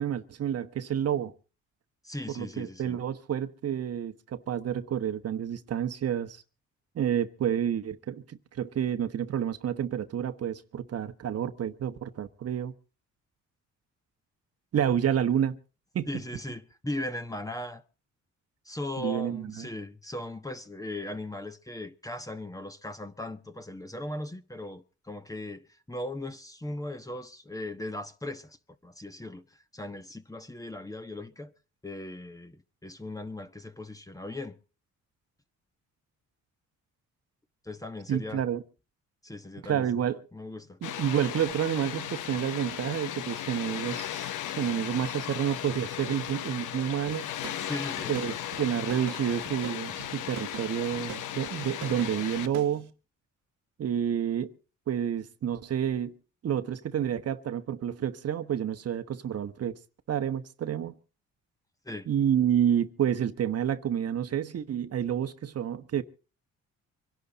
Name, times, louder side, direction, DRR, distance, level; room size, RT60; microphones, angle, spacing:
voice 1, 0.0-1.3 2.3-6.4 6.9-12.7 14.7-15.6 15.9-16.1 19.0-19.7 38.1-38.6 39.7-40.2 40.8-47.3 48.1-52.9 53.8-54.5 54.9-56.1 56.4-59.8 60.1-60.9 62.1-66.0, right 9 dB, 55° right, 1.1 m, -29 dB
voice 2, 2.0-3.0 16.1-17.8 18.6-28.6 28.8-29.4 29.7-31.5 31.8-34.6 37.6-38.4 39.2-39.9 40.3-40.8 47.4-48.1 61.8-62.1, left 1 dB, 10° left, 1.2 m, -38 dB
Water, 40.8-52.5, left 11 dB, 80° left, 0.9 m, -36 dB
sound 1, 47.1-52.8, right 10 dB, 75° right, 1.5 m, -44 dB
25.0 x 11.5 x 4.0 m
cardioid pair, 90°, 30 cm